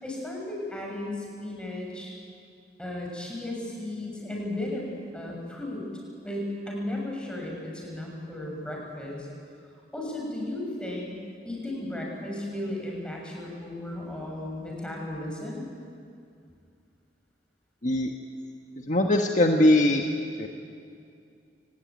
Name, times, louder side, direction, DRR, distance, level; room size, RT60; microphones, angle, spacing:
voice 1, 0.0-2.2 2.8-5.9 6.2-9.3 9.9-11.2 11.4-15.6, left 1 dB, 5° left, -2 dB, 6.6 m, -35 dB
voice 2, 18.8-20.0 20.4-20.5, left 1 dB, 45° left, 3 dB, 1.4 m, -21 dB
29.0 x 18.5 x 9.5 m, 2.4 s
head